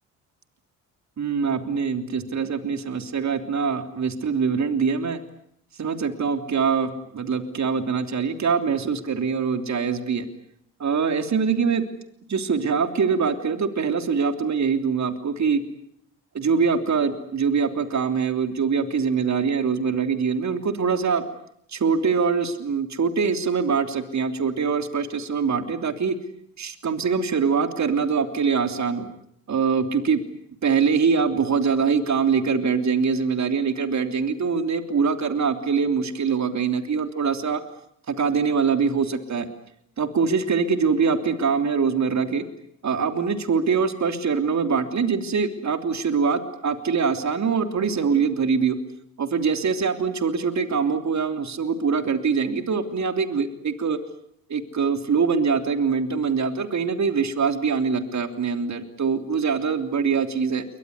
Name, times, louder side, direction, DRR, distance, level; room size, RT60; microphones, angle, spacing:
voice 1, 1.2-5.2 5.8-10.2 10.8-11.8 12.3-15.6 16.3-21.2 21.7-26.2 26.6-29.1 29.5-30.2 30.6-37.6 38.1-39.5 40.0-42.4 42.8-48.8 49.2-54.0 54.5-60.6, right 5 dB, 45° right, 8 dB, 3.3 m, -23 dB
29.0 x 23.0 x 8.3 m, 0.69 s
hypercardioid pair, 50°, 39 cm